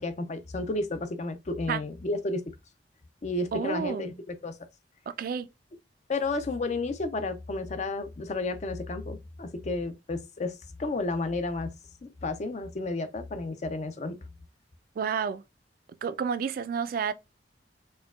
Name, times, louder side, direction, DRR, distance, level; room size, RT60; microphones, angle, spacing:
voice 1, 0.0-2.4 3.2-4.6 6.1-11.7 12.0-14.2, left 2 dB, 40° left, 0.5 m, -32 dB
voice 2, 3.5-4.0 5.1-5.5 15.0-15.4 16.0-17.1, right 6 dB, 55° right, 0.3 m, -30 dB
4.4 x 2.2 x 2.3 m
head